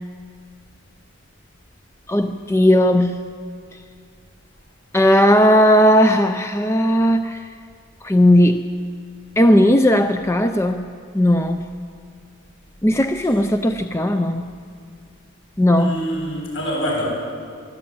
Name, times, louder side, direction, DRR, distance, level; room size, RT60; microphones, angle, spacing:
voice 1, 2.1-3.3 3.7-3.8 4.9-7.5 8.0-8.7 9.4-10.9 11.1-11.6 12.8-14.5 15.6-16.0, equal, 10° left, 7 dB, 0.4 m, -16 dB
voice 2, 15.8-17.1, equal, 60° left, -2 dB, 7.7 m, -25 dB
24.0 x 13.0 x 8.8 m, 2.2 s
head